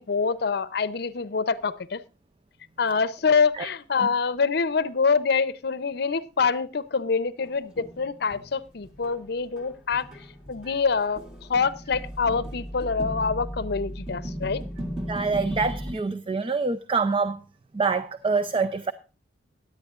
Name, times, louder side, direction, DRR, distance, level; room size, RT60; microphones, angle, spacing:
voice 1, 0.0-2.0 2.8-10.1 10.5-11.2 11.5-14.6, left 5 dB, 60° left, 0.6 m, -25 dB
sound 1, 7.4-9.2 9.6-15.9, equal, 5° right, 1.9 m, -36 dB
voice 2, 15.1-17.4 17.7-18.9, right 4 dB, 30° right, 0.4 m, -26 dB
16.5 x 10.5 x 2.4 m
head